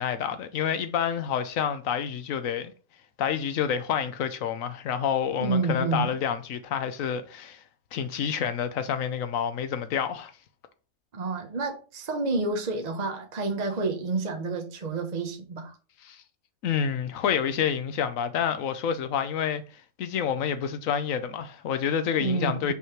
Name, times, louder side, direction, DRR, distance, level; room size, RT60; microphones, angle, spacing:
voice 1, 0.0-2.7 3.2-7.6 7.9-10.3 16.0-16.2 16.6-19.6 20.0-22.7, left 8 dB, 80° left, 1.1 m, -28 dB
voice 2, 5.4-6.1 11.1-15.7 22.2-22.7, right 3 dB, 35° right, 0.9 m, -29 dB
5.6 x 3.1 x 5.7 m
omnidirectional pair, 1.4 m